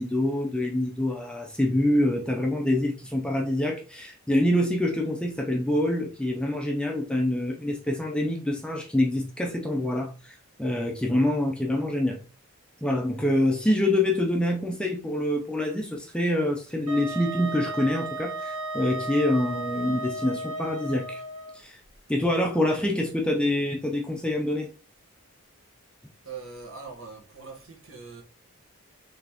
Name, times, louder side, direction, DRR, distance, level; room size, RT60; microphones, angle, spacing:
voice 1, 0.0-12.2 12.8-21.2 21.5-21.8 22.1-24.7, left 1 dB, 5° left, 0.4 m, -26 dB
Wind instrument woodwind instrument, 16.9-21.6, right 2 dB, 85° right, 1.3 m, -34 dB
voice 2, 26.2-28.2, right 5 dB, 60° right, 1.2 m, -42 dB
4.1 x 3.3 x 2.8 m
head